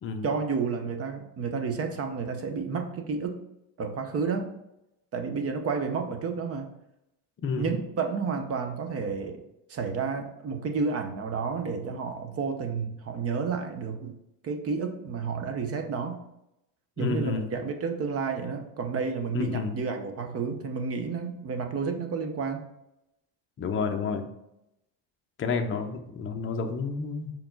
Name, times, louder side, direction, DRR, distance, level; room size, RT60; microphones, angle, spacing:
voice 1, 0.2-3.4 3.8-4.5 5.1-6.7 7.6-9.4 9.7-14.1 14.4-16.2 17.0-22.7, right 5 dB, 35° right, 6 dB, 0.8 m, -31 dB
voice 2, 17.0-17.5 19.3-19.8 23.6-24.2 25.4-27.3, left 4 dB, 30° left, 5 dB, 0.7 m, -30 dB
5.4 x 4.8 x 3.8 m, 0.86 s
cardioid pair, 145°, 40 cm